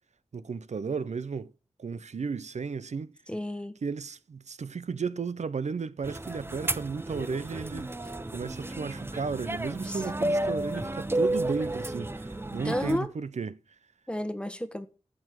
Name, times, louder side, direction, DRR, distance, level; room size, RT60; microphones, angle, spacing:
voice 1, 0.3-1.5 1.8-3.1 3.8-7.9 8.3-13.6, right 5 dB, 85° right, 0.6 m, -34 dB
voice 2, 3.3-3.7 9.8-10.0 12.6-13.1 14.1-14.9, left 1 dB, 10° left, 1.3 m, -31 dB
sound 1, 6.0-13.0, right 1 dB, 20° right, 0.6 m, -32 dB
13.5 x 6.2 x 6.2 m
wide cardioid pair, 85°, 12 cm